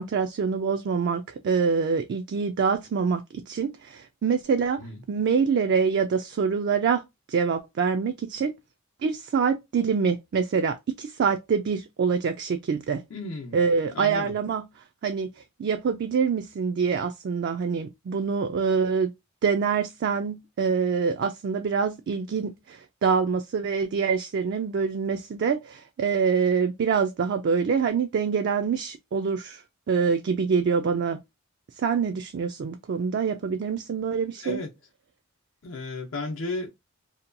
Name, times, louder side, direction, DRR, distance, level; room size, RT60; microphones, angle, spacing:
voice 1, 0.0-7.0 7.3-8.5 9.0-13.0 13.5-19.1 19.4-31.2 31.8-34.6, right 5 dB, 55° right, 0.3 m, -25 dB
voice 2, 13.1-13.6 13.9-14.3 34.4-34.7 35.6-36.7, left 3 dB, 70° left, 0.6 m, -33 dB
2.8 x 2.2 x 2.5 m
head